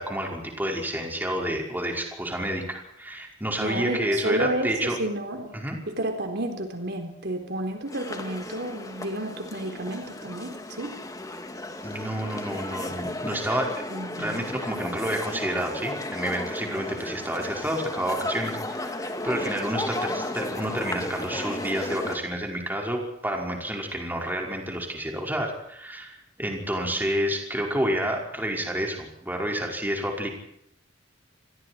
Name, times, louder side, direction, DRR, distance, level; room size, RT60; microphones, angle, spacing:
voice 1, 0.0-5.0 5.5-5.8 11.8-13.7 14.2-30.3, right 1 dB, 10° right, 1 dB, 5.3 m, -29 dB
voice 2, 3.6-5.6 5.9-11.0 13.9-14.5, right 1 dB, 60° right, 5 dB, 4.0 m, -31 dB
sound 1, 7.9-22.2, left 1 dB, 20° left, 2.6 m, -34 dB
29.0 x 22.0 x 4.6 m, 0.74 s
head